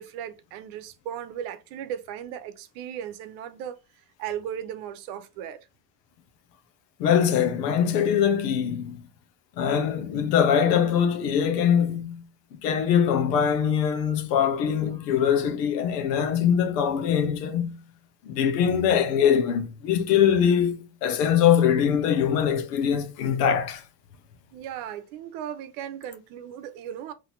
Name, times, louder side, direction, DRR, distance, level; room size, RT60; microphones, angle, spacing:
voice 1, 0.0-3.8 4.2-5.7 24.5-27.1, right 9 dB, 80° right, 0.8 m, -36 dB
voice 2, 7.0-9.0 9.6-12.2 12.5-17.8 18.2-23.8, left 8 dB, 90° left, 0.9 m, -22 dB
3.9 x 2.9 x 4.3 m
hypercardioid pair, 60°, 47 cm